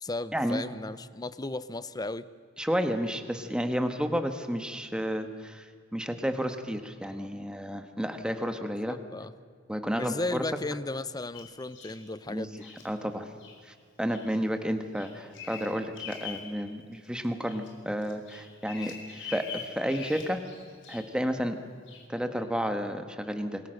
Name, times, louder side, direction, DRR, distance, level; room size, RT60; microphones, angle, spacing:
voice 1, 0.0-2.3 8.8-9.3 9.9-12.6 18.8-18.9, left 2 dB, 20° left, 15 dB, 0.7 m, -35 dB
voice 2, 2.6-9.0 9.7-10.4 12.3-12.5 12.8-13.3 13.6-20.4 20.9-21.6 22.1-23.6, equal, 5° right, 6 dB, 1.5 m, -31 dB
Bird vocalization bird call bird song, 11.3-12.0 12.6-12.9 13.4-13.6 14.1-14.4 14.7-16.5 16.9-17.7 18.0-21.2 21.9-22.1, left 6 dB, 70° left, 4.2 m, -44 dB
27.5 x 21.5 x 6.6 m, 2.1 s
head